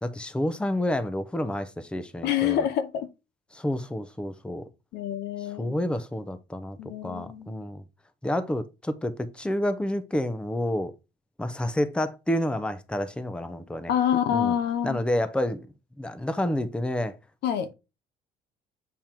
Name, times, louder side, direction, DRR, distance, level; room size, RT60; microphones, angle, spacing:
voice 1, 0.0-2.7 3.5-4.6 5.6-6.8 7.0-7.8 8.2-10.9 11.4-13.9 14.3-14.6 14.8-15.7 16.0-17.1, left 1 dB, 5° left, 0.7 m, -29 dB
voice 2, 2.2-3.1 4.9-5.8 6.8-7.6 13.9-15.0 17.4-17.7, left 9 dB, 75° left, 0.9 m, -27 dB
7.5 x 3.6 x 4.4 m
cardioid pair, 110°, 17 cm